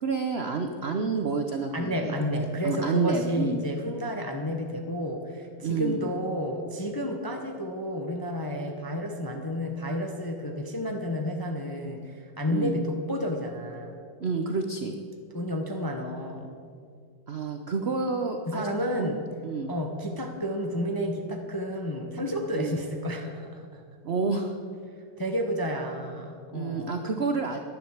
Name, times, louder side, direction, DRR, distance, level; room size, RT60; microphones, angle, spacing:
voice 1, 0.0-2.1 2.6-3.6 5.6-6.0 12.5-12.7 14.2-14.9 17.3-18.7 19.0-19.1 19.4-19.7 22.5-22.8 24.0-24.6 26.5-27.6, right 4 dB, 80° right, 5 dB, 0.5 m, -29 dB
voice 2, 1.7-13.9 15.3-16.5 18.5-19.2 19.7-23.8 25.2-26.9, equal, 25° left, 3 dB, 0.5 m, -31 dB
11.0 x 10.5 x 7.3 m, 2.2 s
omnidirectional pair, 2.2 m